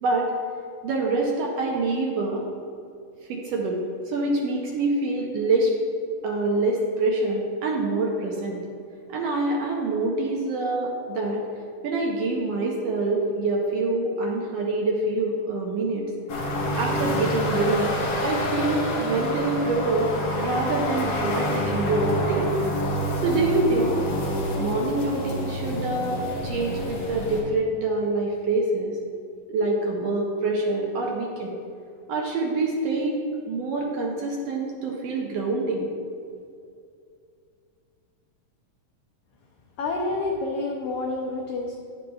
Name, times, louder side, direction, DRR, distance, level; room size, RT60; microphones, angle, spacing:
voice 1, 0.8-2.4 3.3-3.8 4.1-5.7 6.2-8.6 9.1-11.4 11.8-16.1 16.7-17.9 18.2-20.1 20.4-22.5 23.2-24.0 24.6-29.0 29.5-31.5 32.1-33.2 33.5-35.9, right 2 dB, 70° right, -1 dB, 1.6 m, -25 dB
sound 1, 16.3-27.4, left 1 dB, 60° left, 2.2 m, -27 dB
voice 2, 39.8-41.7, left 2 dB, 90° left, 0 dB, 1.3 m, -28 dB
9.6 x 5.1 x 2.3 m, 2.4 s
omnidirectional pair, 3.3 m